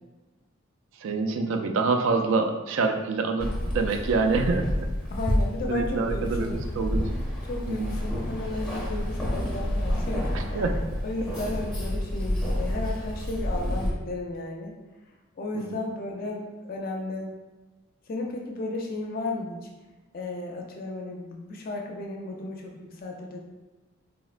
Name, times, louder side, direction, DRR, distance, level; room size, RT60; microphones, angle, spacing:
voice 1, 1.0-4.9 5.7-7.0 7.7-7.9 10.3-10.7 15.7-15.8, right 4 dB, 70° right, 5 dB, 0.3 m, -26 dB
Keys jangling, 3.4-13.9, equal, 5° left, 0.7 m, -29 dB
voice 2, 5.1-6.6 7.4-10.6 11.0-14.7 15.4-17.3 18.1-19.6 20.1-23.4, left 2 dB, 45° left, 0 dB, 0.4 m, -34 dB
3.7 x 2.1 x 2.4 m, 1.2 s
head